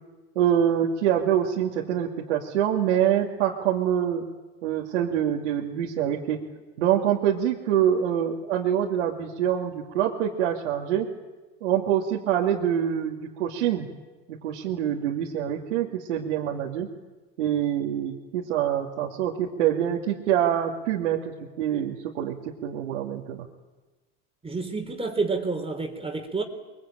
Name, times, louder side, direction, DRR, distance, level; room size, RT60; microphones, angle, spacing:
voice 1, 0.4-4.3 4.6-6.4 6.8-11.1 11.6-13.9 14.4-16.9 17.4-22.4 22.6-23.4, right 10 dB, 90° right, 2.6 m, -25 dB
voice 2, 24.4-26.4, right 4 dB, 15° right, 3.5 m, -29 dB
23.5 x 22.5 x 9.0 m
supercardioid pair, 95°, 35 cm